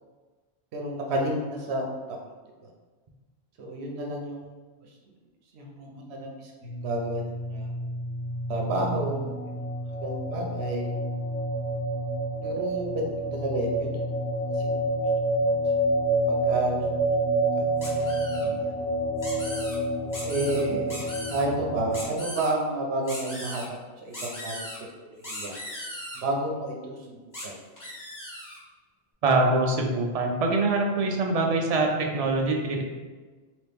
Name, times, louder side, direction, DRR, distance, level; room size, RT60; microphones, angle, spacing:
voice 1, 0.7-2.0 3.6-4.5 5.5-7.7 8.5-9.6 10.0-10.9 12.4-13.0 13.3-14.0 14.5-14.8 16.3-16.8 17.2-17.6 18.3-18.7 20.2-21.0 21.3-24.6 25.0-25.5 26.1-27.5, right 1 dB, 80° right, 0 dB, 1.0 m, -31 dB
sound 1, 6.6-22.0, right 1 dB, 65° left, 0.7 m, -28 dB
sound 2, 17.8-18.5 19.2-19.8 20.1-20.6 20.9-21.4 21.9-22.5 23.1-23.7 24.1-24.8 25.2-26.2 27.3-27.5 27.8-28.6, left 1 dB, 20° left, 0.6 m, -38 dB
voice 2, 29.2-32.8, right 2 dB, 50° right, 1 dB, 0.4 m, -24 dB
2.9 x 2.9 x 3.4 m, 1.3 s
omnidirectional pair, 1.1 m